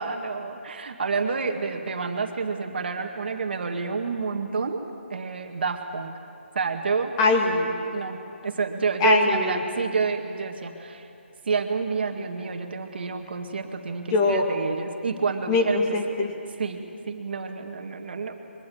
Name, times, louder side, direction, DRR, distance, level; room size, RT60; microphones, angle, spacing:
voice 1, 0.0-4.8 5.1-6.1 6.5-7.1 7.9-11.1 11.4-15.8 16.6-18.3, right 4 dB, 55° right, 4 dB, 2.1 m, -29 dB
voice 2, 7.2-7.8 9.0-9.6 14.1-14.5 15.5-16.3, left 3 dB, 25° left, 2 dB, 2.3 m, -22 dB
23.0 x 23.0 x 8.1 m, 2.6 s
figure-of-eight pair, 155°, 7 cm